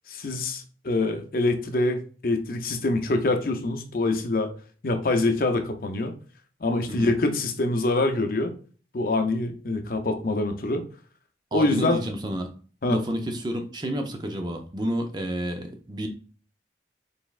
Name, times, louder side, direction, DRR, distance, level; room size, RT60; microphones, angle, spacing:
voice 1, 0.1-4.5 4.8-6.2 6.6-8.5 8.9-10.8 11.5-12.0 12.8-13.0, left 2 dB, 50° left, 6 dB, 0.6 m, -25 dB
voice 2, 11.5-12.5 12.9-16.1, right 1 dB, 25° right, 5 dB, 0.5 m, -30 dB
4.1 x 3.4 x 2.4 m, 0.40 s
head